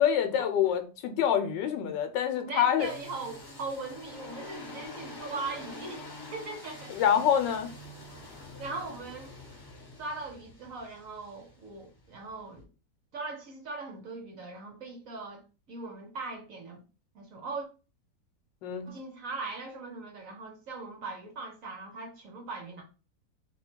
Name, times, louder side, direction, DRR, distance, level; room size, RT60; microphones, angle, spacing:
voice 1, 0.0-2.9 6.9-7.7 18.6-18.9, left 9 dB, 80° left, 1.3 m, -26 dB
voice 2, 2.3-6.0 6.3-7.0 8.6-9.3 10.0-12.7 13.1-16.8 17.1-17.7 18.9-22.8, right 3 dB, 55° right, 1.0 m, -40 dB
sound 1, 2.8-12.6, left 2 dB, 15° left, 1.0 m, -46 dB
3.0 x 2.8 x 4.3 m
omnidirectional pair, 2.0 m